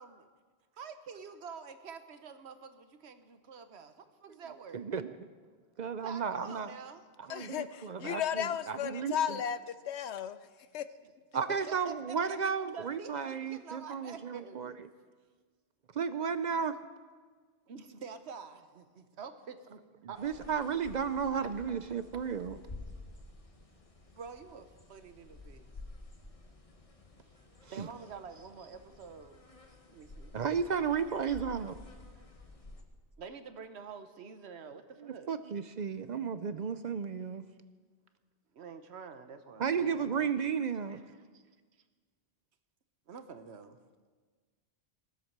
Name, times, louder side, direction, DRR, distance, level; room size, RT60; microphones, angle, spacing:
voice 1, 0.8-4.8 6.0-7.0 11.7-12.4 12.7-14.9 17.7-20.4 24.1-25.7 26.4-26.5 27.2-27.4 27.6-29.4 29.9-30.4 30.7-31.2 32.1-32.3 33.2-35.3 38.5-40.3 40.8-41.4 43.1-43.8, right 5 dB, 75° right, 9 dB, 1.2 m, -48 dB
voice 2, 4.7-5.2 5.8-6.7 7.3-9.4 11.3-14.7 15.9-16.8 20.2-22.6 27.8-27.9 30.3-31.7 35.0-37.4 39.6-41.0, right 6 dB, 55° right, 12 dB, 0.5 m, -33 dB
voice 3, 7.3-10.5 10.7-10.9, left 9 dB, 80° left, 13 dB, 0.9 m, -34 dB
sound 1, 20.2-32.8, left 2 dB, 35° left, 1.3 m, -52 dB
18.5 x 8.0 x 6.6 m, 1.5 s
omnidirectional pair, 1.1 m